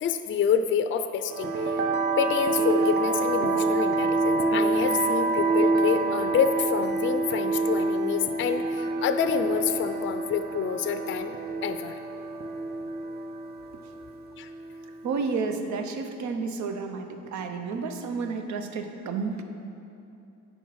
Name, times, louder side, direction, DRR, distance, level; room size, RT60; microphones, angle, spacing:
voice 1, 0.0-1.8 2.2-11.3 11.6-12.0 14.4-14.5, left 7 dB, 40° left, 9 dB, 0.4 m, -27 dB
sound 1, 1.3-15.4, right 3 dB, 35° right, 0.5 m, -27 dB
voice 2, 15.0-19.4, right 4 dB, 70° right, 6 dB, 0.7 m, -31 dB
9.2 x 5.4 x 4.7 m, 2.8 s
cardioid pair, 90°, 30 cm